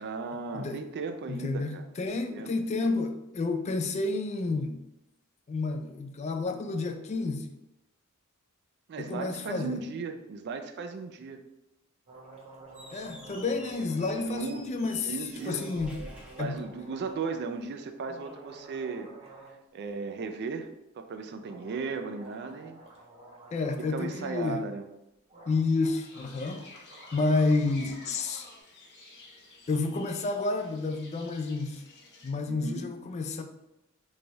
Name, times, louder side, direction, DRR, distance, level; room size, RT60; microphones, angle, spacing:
voice 1, 0.0-3.0 8.9-11.4 14.2-14.7 15.0-15.7 16.4-19.1 19.5-20.7 21.0-22.8 23.9-24.8 32.5-32.9, right 4 dB, 50° right, 8 dB, 0.4 m, -36 dB
voice 2, 1.3-4.9 5.5-7.5 9.0-9.8 12.9-15.1 15.5-16.0 16.4-16.6 23.5-24.6 25.5-26.6 27.1-28.5 29.7-31.8 32.2-33.4, left 3 dB, 30° left, 6 dB, 0.3 m, -30 dB
sound 1, 12.1-14.3 15.3-17.1 17.9-19.6 19.9-20.0 21.4-24.1 25.0-25.1 25.3-28.6, right 2 dB, 30° right, 0.7 m, -50 dB
Squeak, 12.6-17.3, equal, 5° right, 1.0 m, -49 dB
sound 2, 26.0-32.3, left 3 dB, 55° left, 0.8 m, -52 dB
3.2 x 2.3 x 3.9 m, 0.90 s
head